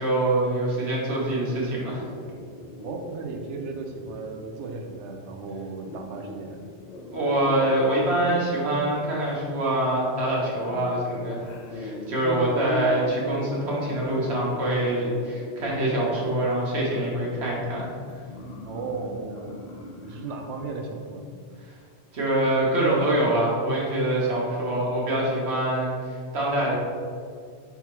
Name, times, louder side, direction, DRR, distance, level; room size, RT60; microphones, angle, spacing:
voice 1, 0.0-2.1 7.1-11.4 11.7-17.9 22.1-26.8, right 1 dB, 70° right, -4 dB, 1.3 m, -25 dB
sound 1, 1.1-20.7, left 1 dB, 55° left, 0.5 m, -41 dB
voice 2, 2.8-6.6 12.4-12.7 18.6-19.6 20.0-21.3, right 3 dB, 90° right, 3 dB, 0.9 m, -35 dB
4.4 x 3.5 x 3.0 m, 2.1 s
omnidirectional pair, 1.1 m